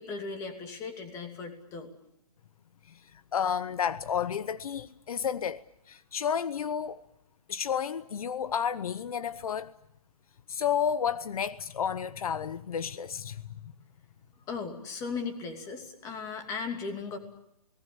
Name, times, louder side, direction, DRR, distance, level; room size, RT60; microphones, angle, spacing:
voice 1, 0.0-1.9 14.5-17.2, left 4 dB, 15° left, 2.8 m, -37 dB
voice 2, 3.3-5.6 5.9-7.0 7.5-9.7 10.5-13.7, left 8 dB, 70° left, 0.9 m, -31 dB
29.0 x 19.5 x 8.5 m
hypercardioid pair, 165°, 19 cm